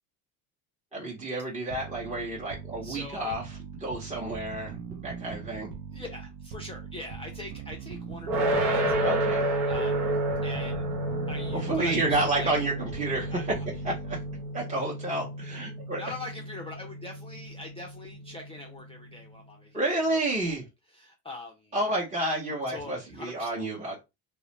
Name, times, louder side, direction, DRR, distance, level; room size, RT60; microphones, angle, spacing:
voice 1, 0.9-5.7 9.0-9.5 11.5-13.4 13.8-14.2 14.5-16.0 19.7-20.6 21.7-24.0, right 2 dB, 15° right, 0.8 m, -30 dB
sound 1, 1.7-14.6, right 7 dB, 60° right, 0.7 m, -41 dB
voice 2, 2.8-3.3 5.9-9.2 9.7-10.8 11.3-12.5 13.3-13.4 15.9-19.8 20.1-20.5 20.9-21.7 22.5-23.6, left 2 dB, 15° left, 0.4 m, -42 dB
sound 2, 8.3-19.2, right 1 dB, 80° right, 1.0 m, -31 dB
2.4 x 2.1 x 3.0 m
supercardioid pair, 100°, 43 cm